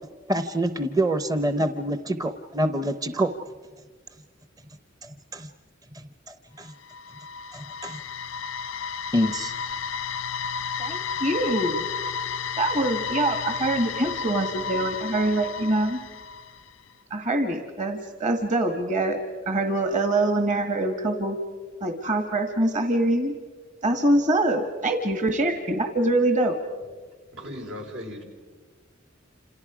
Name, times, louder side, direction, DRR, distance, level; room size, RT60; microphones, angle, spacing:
voice 1, 0.3-3.3 5.0-5.5 5.9-6.7 7.5-8.0 9.1-9.5, right 1 dB, 20° right, 10 dB, 0.7 m, -26 dB
sound 1, 6.6-16.7, left 6 dB, 85° left, 0.6 m, -32 dB
voice 2, 10.8-11.9 12.6-16.0 17.1-19.2 19.4-21.4 21.8-23.3 23.8-26.6, right 1 dB, 40° right, 6 dB, 1.7 m, -24 dB
voice 3, 27.3-28.2, left 1 dB, 80° right, 1 dB, 5.2 m, -37 dB
29.0 x 27.5 x 5.0 m, 1.4 s
head